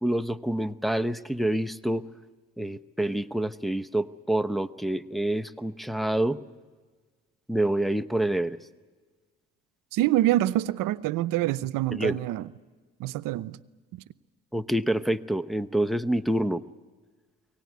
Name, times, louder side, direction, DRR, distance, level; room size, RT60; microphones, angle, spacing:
voice 1, 0.0-2.0 2.6-6.4 7.5-8.6 11.9-12.2 14.5-16.6, right 1 dB, ahead, 0.8 m, -27 dB
voice 2, 9.9-12.5 13.0-13.6 13.9-14.0, right 15 dB, 80° right, 0.8 m, -26 dB
23.5 x 18.0 x 9.4 m
supercardioid pair, 75°, 33 cm